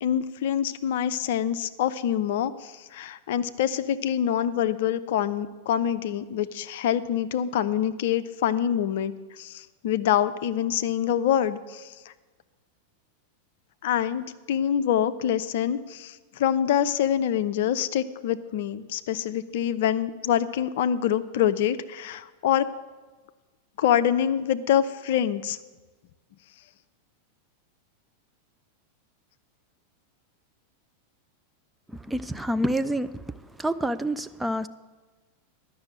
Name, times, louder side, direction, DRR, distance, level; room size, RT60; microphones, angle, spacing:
voice 1, 0.0-11.9 13.8-22.7 23.8-25.6, left 10 dB, 55° left, 13 dB, 0.5 m, -25 dB
voice 2, 31.9-34.7, right 1 dB, 5° right, 10 dB, 0.3 m, -28 dB
11.5 x 6.1 x 8.4 m, 1.3 s
figure-of-eight pair, 90°, 0 cm